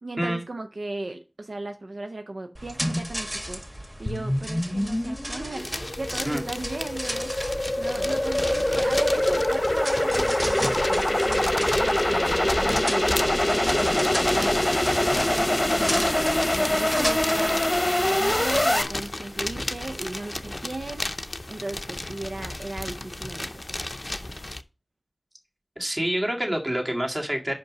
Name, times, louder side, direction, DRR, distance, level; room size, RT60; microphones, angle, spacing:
voice 1, 0.0-3.6 4.0-14.7 15.0-17.8 18.0-23.9, right 2 dB, 80° right, 0.6 m, -36 dB
sound 1, 2.5-17.6, equal, 15° right, 1.8 m, -35 dB
sound 2, 4.1-18.8, left 1 dB, 20° left, 0.9 m, -24 dB
sound 3, 5.6-24.6, left 1 dB, 40° left, 0.6 m, -34 dB
voice 2, 25.8-27.5, right 1 dB, 35° right, 1.9 m, -27 dB
5.3 x 5.2 x 5.9 m
wide cardioid pair, 60°, 0 cm